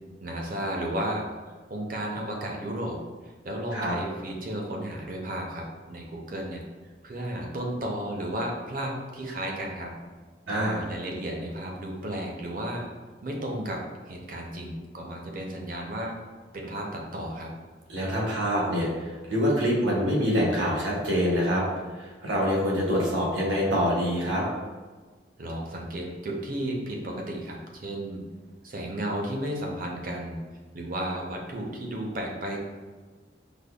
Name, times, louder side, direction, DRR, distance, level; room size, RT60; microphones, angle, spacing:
voice 1, 0.2-1.3 1.7-3.0 3.4-6.6 7.0-9.9 10.5-12.9 13.2-16.2 16.5-17.5 25.4-28.2 28.6-30.4 30.7-32.6, right 1 dB, 50° right, 0 dB, 0.5 m, -33 dB
voice 2, 10.5-10.8 17.9-21.6 22.0-24.4, equal, 90° right, -4 dB, 1.0 m, -25 dB
5.1 x 2.1 x 2.3 m, 1.4 s
head